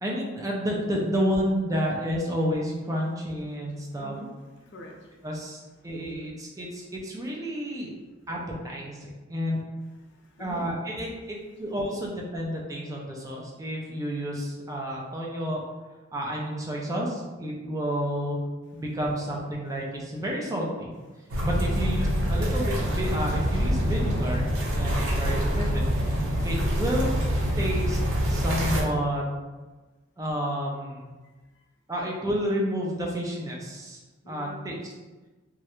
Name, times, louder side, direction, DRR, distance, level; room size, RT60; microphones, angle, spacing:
voice 1, 0.0-4.2 5.2-7.9 8.3-8.4 8.6-9.6 10.4-15.6 16.1-18.4 18.7-20.9 21.4-24.5 24.8-26.1 26.4-27.1 27.6-28.0 28.3-29.2 30.2-31.1 31.9-34.0 34.3-34.8, equal, 15° right, -2 dB, 0.3 m, -30 dB
voice 2, 3.9-4.3 4.5-5.3 5.8-5.9 10.0-10.6 21.2-21.8 24.8-25.0 34.2-34.7, left 1 dB, 60° left, 0 dB, 0.5 m, -45 dB
sound 1, 21.3-28.8, equal, 80° right, 0.6 m, -25 dB
2.3 x 2.1 x 2.9 m, 1.2 s
head